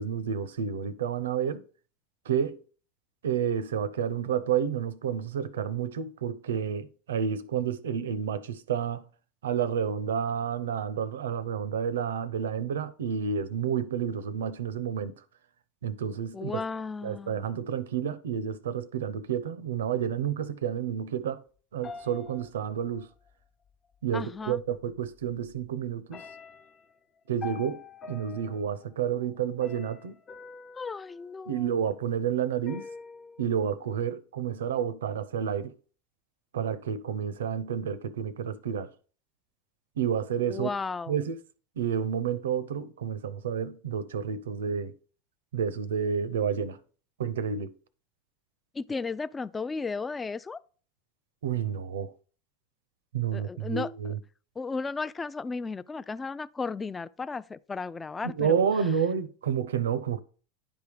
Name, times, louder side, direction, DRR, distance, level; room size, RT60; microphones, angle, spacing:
voice 1, 0.0-1.6 2.3-2.6 3.2-9.0 9.4-15.1 15.8-16.6 17.0-21.4 21.7-23.1 24.0-26.2 27.3-27.8 28.1-30.1 31.5-32.9 33.4-35.7 36.5-38.9 40.0-40.7 41.1-41.4 41.8-44.9 45.5-46.8 47.2-47.7 51.4-52.1 53.1-54.2 58.2-60.2, right 8 dB, 90° right, 0.5 m, -30 dB
voice 2, 16.3-17.5 24.1-24.6 30.8-31.8 40.5-41.2 48.7-50.6 53.3-53.9 54.6-58.6, left 4 dB, 20° left, 0.3 m, -34 dB
sound 1, 21.8-23.3 24.5-24.6 25.0-25.6 26.1-32.0 32.7-33.5, left 5 dB, 35° left, 1.0 m, -46 dB
10.5 x 3.5 x 4.9 m
hypercardioid pair, 100°, 0 cm